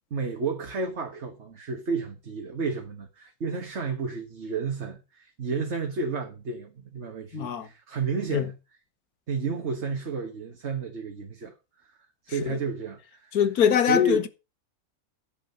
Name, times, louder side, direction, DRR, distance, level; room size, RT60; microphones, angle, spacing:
voice 1, 0.1-8.6 9.3-11.5 12.2-13.4 13.9-14.2, right 3 dB, 50° right, 1.7 m, -31 dB
voice 2, 7.3-7.7 8.3-8.5 12.4-12.6 13.3-14.3, left 8 dB, 75° left, 1.6 m, -23 dB
10.5 x 6.6 x 6.5 m
omnidirectional pair, 1.6 m